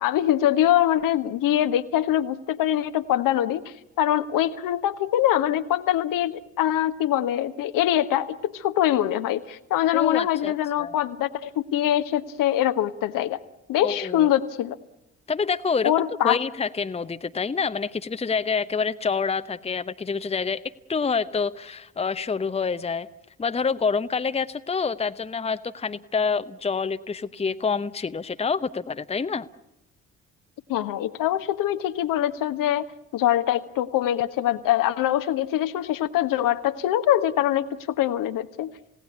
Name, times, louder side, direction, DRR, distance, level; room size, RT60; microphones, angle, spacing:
voice 1, 0.0-3.6 4.0-13.4 13.7-14.8 15.8-16.4 30.7-32.9 33.1-37.7 38.0-38.7, left 12 dB, 55° left, 10 dB, 1.2 m, -23 dB
voice 2, 9.9-10.5 10.8-11.0 13.8-14.3 15.3-15.9 16.2-20.6 20.9-23.1 23.4-29.5, left 5 dB, 15° left, 11 dB, 0.9 m, -27 dB
28.0 x 17.5 x 8.4 m, 0.90 s
figure-of-eight pair, 45°, 39 cm